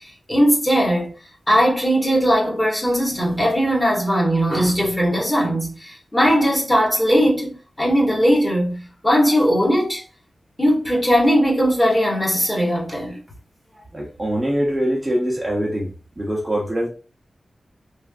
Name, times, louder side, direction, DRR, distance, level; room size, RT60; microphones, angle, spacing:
voice 1, 0.3-1.1 1.5-10.0 10.6-13.2, equal, 20° left, 1.4 m, -19 dB
voice 2, 13.9-15.9 16.2-16.9, equal, 20° right, 0.7 m, -23 dB
3.3 x 2.5 x 2.3 m
wide cardioid pair, 80°, 0 cm